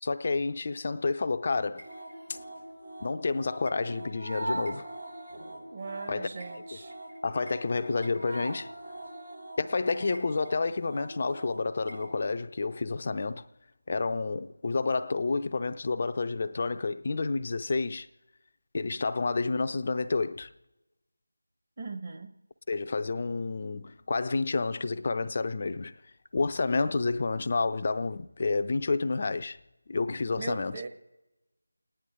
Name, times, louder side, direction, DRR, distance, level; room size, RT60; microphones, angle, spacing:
voice 1, 0.0-1.8 2.3-2.4 3.0-4.9 6.1-6.3 7.2-8.7 9.6-13.5 13.9-18.1 18.7-20.5 22.7-25.9 26.3-29.6 29.9-30.8, left 3 dB, 35° left, 0.6 m, -29 dB
sound 1, 1.7-12.1, right 1 dB, 85° right, 5.6 m, -41 dB
voice 2, 5.7-6.9 21.8-22.3 30.4-30.9, right 4 dB, 35° right, 1.3 m, -39 dB
29.5 x 10.0 x 3.7 m
figure-of-eight pair, 165°, 0 cm